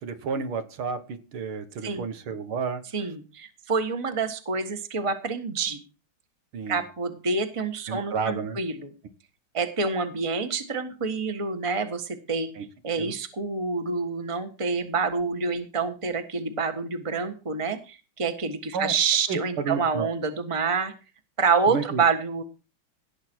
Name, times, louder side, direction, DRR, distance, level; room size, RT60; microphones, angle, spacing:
voice 1, 0.0-2.8 6.5-6.8 7.9-8.6 12.6-12.7 13.0-13.1 18.7-18.9 19.3-20.1 21.7-22.0, right 5 dB, 75° right, 9 dB, 2.3 m, -31 dB
voice 2, 2.9-5.8 6.7-8.9 9.5-12.5 12.8-20.9 21.4-22.4, right 4 dB, 15° right, 8 dB, 1.3 m, -27 dB
17.5 x 8.6 x 4.6 m, 0.32 s
omnidirectional pair, 2.3 m